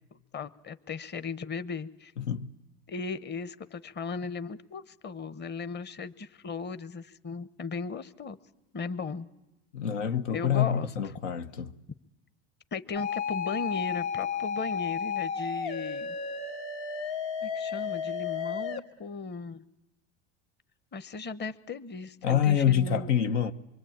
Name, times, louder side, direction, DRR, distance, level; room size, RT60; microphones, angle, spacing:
voice 1, 0.3-2.1 2.9-8.4 8.7-9.3 10.3-10.9 12.7-16.2 17.4-19.6 20.9-23.1, left 5 dB, 30° left, 1.1 m, -37 dB
voice 2, 2.2-2.5 9.7-11.7 22.2-23.5, left 9 dB, 90° left, 1.2 m, -26 dB
sound 1, 12.9-18.8, left 6 dB, 65° left, 2.3 m, -32 dB
24.0 x 24.0 x 8.8 m
supercardioid pair, 95°, 36 cm